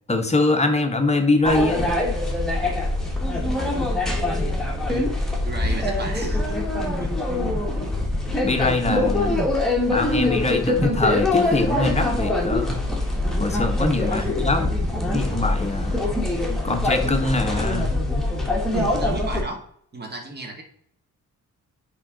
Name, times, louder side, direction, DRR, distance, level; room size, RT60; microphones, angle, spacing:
voice 1, 0.1-2.0 8.4-9.3 9.9-12.8 13.4-14.7 15.0-16.0 16.6-17.9, left 2 dB, 20° left, 6 dB, 0.9 m, -23 dB
sound 1, 1.4-19.4, left 2 dB, ahead, 1.4 m, -23 dB
voice 2, 5.4-6.6 7.0-7.1 14.1-14.4 18.7-19.6 19.9-20.6, right 2 dB, 30° right, 2 dB, 1.6 m, -33 dB
9.5 x 3.7 x 3.8 m, 0.64 s
wide cardioid pair, 140°, 32 cm